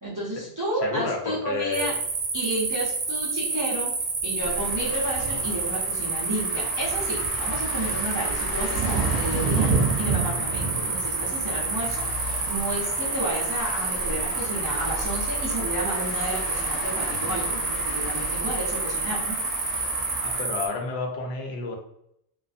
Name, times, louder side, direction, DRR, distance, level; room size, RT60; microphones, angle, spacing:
voice 1, 0.0-1.9 2.3-3.9 4.2-9.7 10.0-19.4, right 1 dB, 25° right, -7 dB, 0.5 m, -31 dB
voice 2, 0.8-1.9 17.1-17.4 20.2-21.8, left 3 dB, 80° left, 2 dB, 0.8 m, -31 dB
sound 1, 1.7-20.7, right 4 dB, 70° right, 0.8 m, -28 dB
sound 2, 4.4-20.4, left 2 dB, 55° left, 0.4 m, -36 dB
2.5 x 2.3 x 2.4 m, 0.75 s
omnidirectional pair, 1.1 m